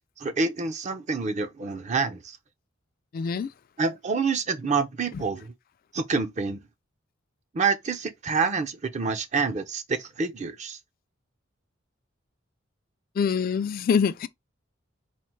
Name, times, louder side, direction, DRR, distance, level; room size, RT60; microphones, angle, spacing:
voice 1, 0.2-2.4 3.8-5.5 5.9-6.6 7.5-10.8, right 4 dB, 35° right, 0.5 m, -27 dB
voice 2, 3.1-3.5 13.2-14.3, left 6 dB, 45° left, 0.3 m, -24 dB
4.2 x 2.1 x 4.5 m
head